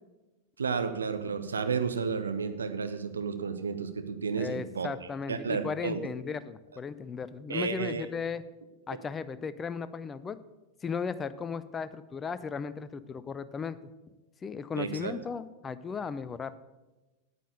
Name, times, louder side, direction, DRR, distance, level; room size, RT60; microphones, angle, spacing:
voice 1, 0.6-4.9 5.3-6.0 7.5-8.0 14.8-15.1, right 5 dB, 70° right, 9 dB, 0.8 m, -32 dB
voice 2, 4.4-8.4 8.9-10.4 10.8-13.8 14.4-16.5, left 5 dB, 20° left, 14 dB, 0.6 m, -36 dB
9.2 x 8.4 x 6.6 m, 1.1 s
figure-of-eight pair, 90°, 0 cm